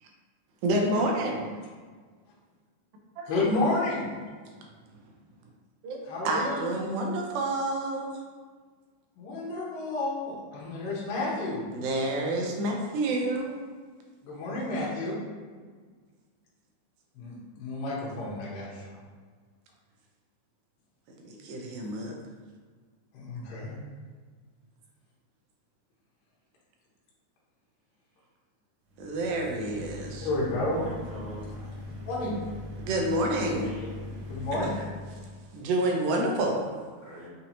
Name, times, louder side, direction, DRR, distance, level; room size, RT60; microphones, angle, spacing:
voice 1, 0.6-1.5 3.2-3.3 5.8-6.0 6.2-8.1 11.7-13.6 21.4-22.1 29.0-30.3 32.9-33.7 35.5-36.6, right 1 dB, 80° right, 0 dB, 2.4 m, -28 dB
voice 2, 3.3-4.1 6.0-6.7 9.2-11.6 14.3-15.2 17.2-19.0 23.1-23.8 30.2-30.8 32.1-32.4 34.3-34.7, left 2 dB, 75° left, -6 dB, 2.4 m, -31 dB
sound 1, 28.9-35.5, left 1 dB, 65° right, 2.2 m, -41 dB
voice 3, 30.7-31.5 33.4-33.9 36.4-37.3, equal, 45° left, -13 dB, 1.2 m, -42 dB
6.3 x 2.8 x 2.8 m, 1.5 s
omnidirectional pair, 4.1 m